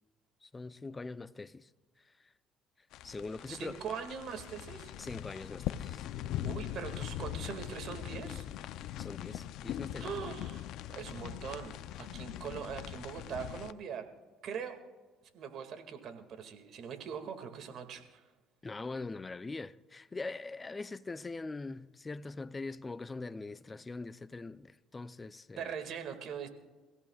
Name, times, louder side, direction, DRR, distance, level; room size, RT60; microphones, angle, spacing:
voice 1, 0.4-1.7 2.0-2.1 3.0-3.8 5.0-6.1 9.0-10.1 18.6-25.7, left 3 dB, 25° left, 0.6 m, -42 dB
sound 1, 2.9-13.7, left 12 dB, 70° left, 0.6 m, -41 dB
voice 2, 3.5-4.9 6.4-8.5 10.0-14.1 14.4-14.8 15.3-18.2 25.6-26.5, right 7 dB, 60° right, 2.2 m, -42 dB
29.0 x 16.5 x 2.4 m
supercardioid pair, 75°, 0 cm